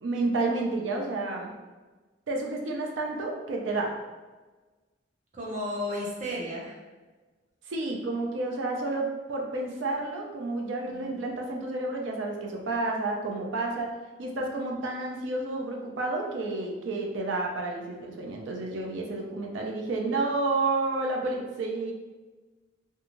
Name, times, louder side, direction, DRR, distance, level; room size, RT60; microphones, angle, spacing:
voice 1, 0.0-1.5 2.3-3.9 7.7-13.9 14.2-21.9, right 2 dB, 85° right, 0 dB, 0.4 m, -30 dB
voice 2, 5.3-6.8 10.9-11.1, left 1 dB, 40° right, -4 dB, 0.7 m, -33 dB
2.5 x 2.3 x 2.9 m, 1.3 s
head